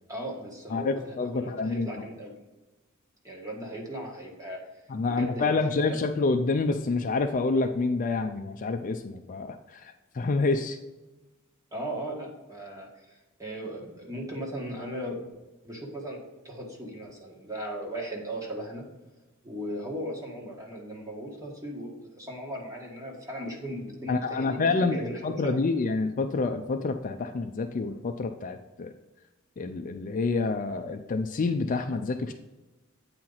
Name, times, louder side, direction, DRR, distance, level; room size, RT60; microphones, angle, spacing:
voice 1, 0.1-2.3 3.2-4.8 5.1-6.1 11.7-15.3 15.6-18.8 19.4-25.6, right 1 dB, 15° right, -1 dB, 1.5 m, -37 dB
voice 2, 0.7-1.9 4.9-10.8 24.1-28.9 29.6-32.3, left 3 dB, 40° left, 6 dB, 0.4 m, -28 dB
8.6 x 4.5 x 3.9 m, 1.1 s
head